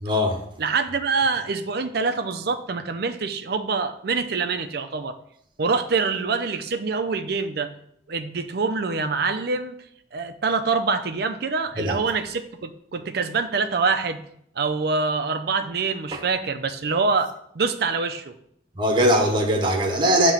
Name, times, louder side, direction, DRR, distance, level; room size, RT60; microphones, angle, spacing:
voice 1, 0.0-0.4 11.8-12.0 16.1-16.2 18.7-20.3, equal, 25° right, 1.1 m, -21 dB
voice 2, 0.6-5.2 5.6-7.7 8.1-9.8 10.1-14.2 14.6-18.3, right 4 dB, 60° right, 0.5 m, -25 dB
7.3 x 3.0 x 5.6 m
head